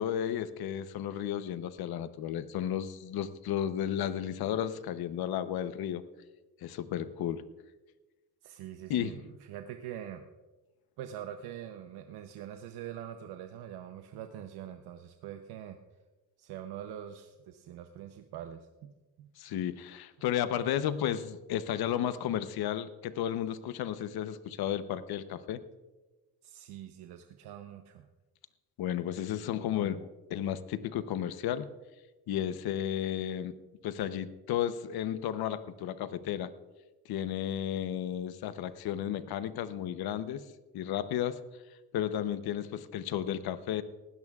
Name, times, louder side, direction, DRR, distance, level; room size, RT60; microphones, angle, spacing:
voice 1, 0.0-6.0 6.6-7.4 8.9-9.1 19.4-25.6 28.8-31.7 32.3-33.5 33.8-36.5 37.1-40.4 40.7-41.4 41.9-43.8, left 10 dB, 75° left, 12 dB, 0.9 m, -33 dB
voice 2, 8.4-10.2 11.0-15.8 16.4-18.9 19.2-19.3 26.4-28.1 37.8-37.9, right 10 dB, 90° right, 6 dB, 0.8 m, -44 dB
19.5 x 16.0 x 2.4 m, 1.2 s
cardioid pair, 105°, 37 cm